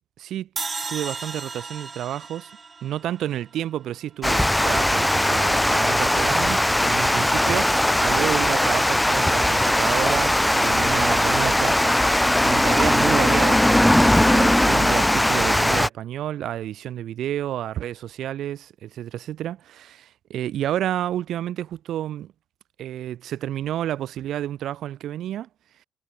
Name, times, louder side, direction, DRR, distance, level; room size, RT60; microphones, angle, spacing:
voice 1, 0.2-0.5 0.9-2.5 2.8-12.1 12.4-22.3 22.8-25.5, right 12 dB, 60° right, 2.6 m, -30 dB
sound 1, 0.6-3.8, right 4 dB, 35° right, 2.6 m, -35 dB
Water, 4.2-15.9, left 1 dB, 5° left, 0.6 m, -19 dB
figure-of-eight pair, 45°, 0 cm